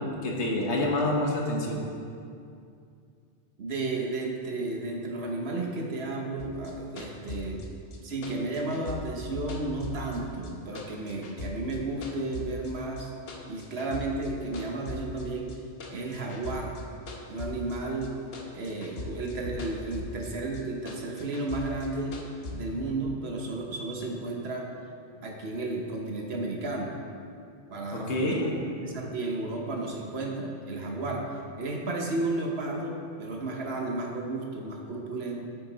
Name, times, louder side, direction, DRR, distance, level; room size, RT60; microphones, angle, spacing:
voice 1, 0.0-1.8 27.9-28.5, left 1 dB, 75° left, -1 dB, 1.4 m, -27 dB
voice 2, 3.6-7.6 8.0-13.1 13.5-15.5 15.9-16.8 17.3-18.1 18.5-22.2 22.5-24.7 25.1-26.9 27.7-28.3 28.8-35.4, right 2 dB, 65° right, 0 dB, 1.2 m, -33 dB
sound 1, 6.4-10.5 10.8-12.7 13.0-14.3 14.5-18.1 18.3-20.3 20.5-22.6, left 2 dB, 60° left, 1.1 m, -39 dB
8.6 x 6.8 x 4.0 m, 2.4 s
omnidirectional pair, 1.2 m